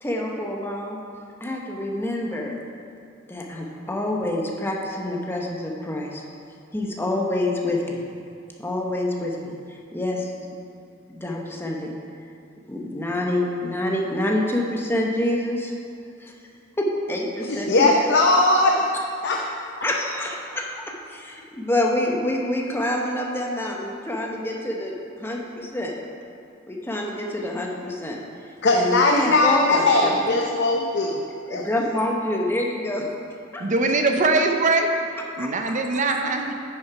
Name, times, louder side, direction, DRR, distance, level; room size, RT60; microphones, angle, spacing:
voice 1, 0.0-1.0 1.4-2.6 3.3-6.2 6.7-8.0 8.6-10.6 11.1-11.9 12.7-15.7 16.2-16.3 16.8-18.1 19.8-25.9 26.7-28.2 28.7-30.4 31.5-33.1 33.5-33.7 35.4-35.7, left 1 dB, 10° left, 1.0 m, -27 dB
voice 2, 17.5-18.9 19.2-19.6 28.6-31.2 31.5-31.6, left 2 dB, 60° left, 0.6 m, -19 dB
voice 3, 33.6-34.9 35.4-36.5, right 3 dB, 40° right, 0.6 m, -21 dB
9.9 x 6.1 x 4.8 m
head